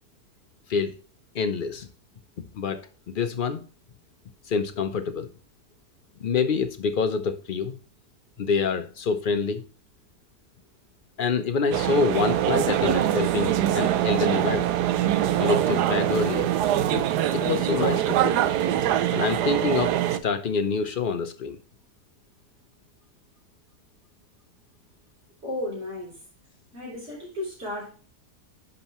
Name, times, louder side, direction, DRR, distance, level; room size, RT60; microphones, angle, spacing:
voice 1, 1.3-1.9 2.4-2.8 3.1-3.7 4.5-5.3 6.2-7.8 8.4-9.6 11.2-14.7 15.4-16.5 16.9-17.1 17.3-18.4 19.1-21.6, left 5 dB, 80° left, 8 dB, 0.4 m, -26 dB
sound 1, 11.7-20.2, right 11 dB, 85° right, 1.2 m, -23 dB
voice 2, 25.4-26.2 26.7-27.9, left 1 dB, 40° right, -7 dB, 4.2 m, -34 dB
11.0 x 5.4 x 3.0 m, 0.39 s
omnidirectional pair, 1.7 m